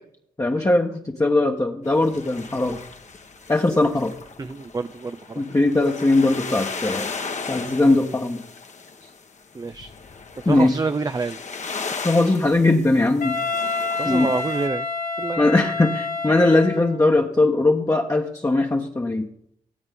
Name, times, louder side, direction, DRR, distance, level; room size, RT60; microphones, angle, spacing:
voice 1, 0.4-2.8 3.5-4.1 5.4-7.1 7.5-8.4 10.4-10.7 12.0-13.4 14.0-14.3 15.4-19.3, left 2 dB, 20° left, 0 dB, 1.2 m, -20 dB
sound 1, 1.8-14.7, left 4 dB, 50° left, 1.3 m, -36 dB
voice 2, 4.4-5.4 9.5-9.9 10.4-11.4 14.0-14.9 15.2-15.5, right 4 dB, 25° right, 11 dB, 0.5 m, -27 dB
Wind instrument woodwind instrument, 13.2-17.0, left 4 dB, 70° left, 1.5 m, -28 dB
19.0 x 7.9 x 3.8 m, 0.72 s
supercardioid pair, 45°, 15 cm